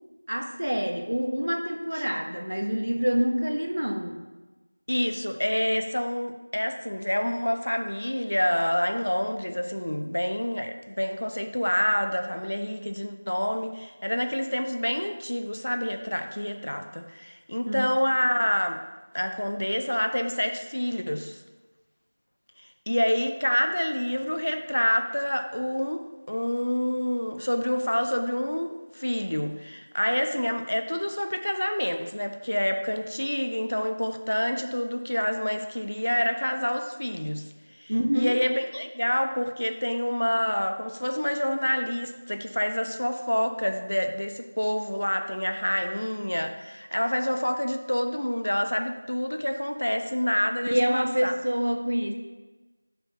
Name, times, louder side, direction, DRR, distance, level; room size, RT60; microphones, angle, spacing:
voice 1, 0.3-4.2 17.7-17.9 37.9-38.4 50.6-52.2, equal, 75° right, 5 dB, 0.7 m, -26 dB
voice 2, 4.9-18.8 19.1-21.4 22.6-37.5 37.8-51.3, equal, 75° left, 7 dB, 0.5 m, -27 dB
6.4 x 4.4 x 4.5 m, 1.2 s
figure-of-eight pair, 180°, 0 cm